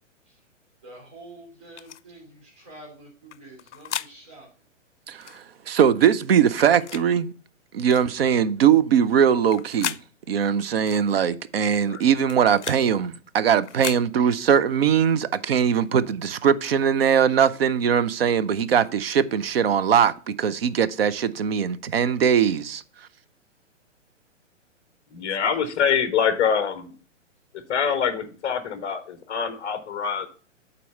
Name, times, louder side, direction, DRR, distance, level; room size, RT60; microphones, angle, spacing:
voice 1, 0.8-4.5 25.3-25.5, right 1 dB, 15° right, 3.0 m, -47 dB
sound 1, 1.8-2.0 3.3-4.1 5.2-5.4 6.5-7.1 7.9-8.1 9.3-10.0 10.9-11.0 12.0-12.8 13.6-14.0, left 10 dB, 65° left, 0.5 m, -34 dB
voice 2, 5.1-7.3 7.7-10.0 10.3-22.8, right 8 dB, 50° right, 0.6 m, -21 dB
voice 3, 25.1-26.9 27.7-30.3, left 7 dB, 15° left, 0.6 m, -25 dB
8.3 x 4.1 x 5.3 m
figure-of-eight pair, 120°, 38 cm